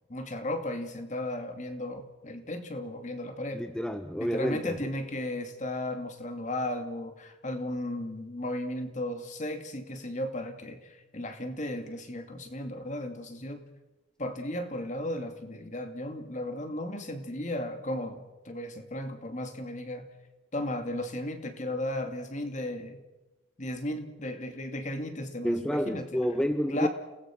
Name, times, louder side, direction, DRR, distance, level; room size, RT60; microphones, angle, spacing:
voice 1, 0.1-3.6 4.1-13.6 14.2-20.1 20.5-23.0 23.6-26.3 26.7-26.9, left 1 dB, 40° left, 6 dB, 2.6 m, -35 dB
voice 2, 3.5-4.7 25.4-26.9, equal, 5° left, 8 dB, 0.8 m, -29 dB
29.5 x 19.0 x 6.2 m, 1.1 s
head